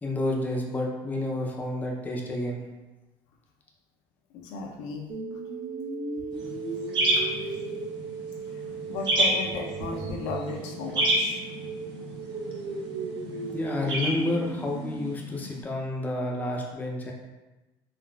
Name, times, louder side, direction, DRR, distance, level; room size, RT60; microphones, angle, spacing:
voice 1, 0.0-2.6 13.5-17.1, left 1 dB, 15° left, -1 dB, 0.5 m, -30 dB
voice 2, 4.3-5.4 7.1-7.3 8.9-11.4, left 4 dB, 85° left, 0 dB, 0.5 m, -35 dB
sound 1, 5.1-15.1, right 4 dB, 85° right, 0.7 m, -36 dB
sound 2, 6.3-15.6, right 1 dB, 45° right, 0.8 m, -31 dB
3.8 x 2.3 x 2.3 m, 1.1 s
cardioid pair, 120°, 12 cm